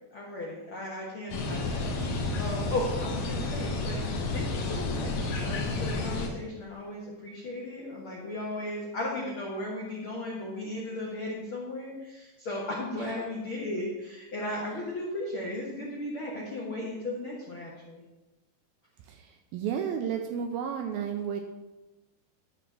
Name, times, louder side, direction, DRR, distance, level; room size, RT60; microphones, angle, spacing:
voice 1, 0.1-4.0 4.3-18.0, left 1 dB, 85° left, -4 dB, 1.1 m, -36 dB
sound 1, 1.3-6.3, left 2 dB, 65° left, 1.9 m, -31 dB
voice 2, 19.0-21.4, right 8 dB, 85° right, 5 dB, 2.1 m, -32 dB
11.5 x 4.2 x 6.0 m, 1.1 s
omnidirectional pair, 4.7 m